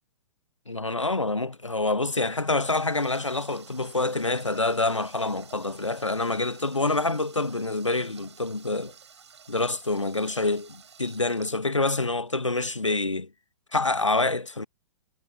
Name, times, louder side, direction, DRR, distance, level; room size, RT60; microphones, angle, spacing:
voice 1, 0.7-8.9 9.5-13.3 13.7-14.7, left 2 dB, 85° left, 1.3 m, -27 dB
Water tap faucet, 2.1-12.3, right 6 dB, 65° right, 6.6 m, -52 dB
figure-of-eight pair, 110°, 16 cm